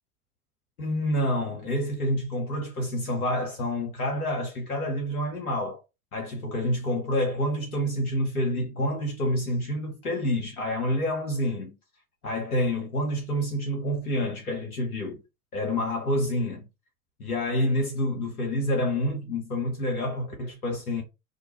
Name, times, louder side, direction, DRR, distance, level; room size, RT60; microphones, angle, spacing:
voice 1, 0.8-5.8 6.1-11.8 12.2-15.2 15.5-16.6 17.2-21.0, left 1 dB, 85° left, 0.7 m, -28 dB
2.4 x 2.2 x 2.7 m
figure-of-eight pair, 70°, 43 cm